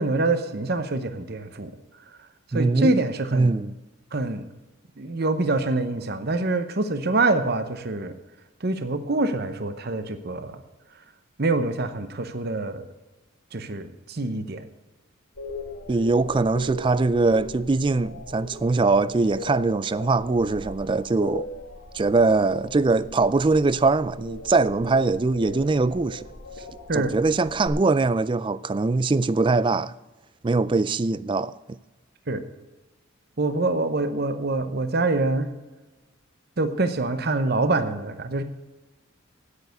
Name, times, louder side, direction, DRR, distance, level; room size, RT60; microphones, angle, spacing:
voice 1, 0.0-1.7 2.5-3.5 4.1-4.5 5.0-8.1 8.6-10.6 11.4-12.8 13.5-14.6 26.9-27.1 32.3-32.4 33.4-35.5 36.6-38.4, right 2 dB, 50° right, 0.9 m, -25 dB
voice 2, 2.5-3.0 3.3-3.7 15.9-21.5 21.9-26.2 26.9-29.9 30.4-31.6, right 3 dB, 25° right, 0.3 m, -22 dB
sound 1, 15.4-27.7, left 1 dB, 85° left, 2.0 m, -39 dB
9.7 x 9.4 x 8.0 m
head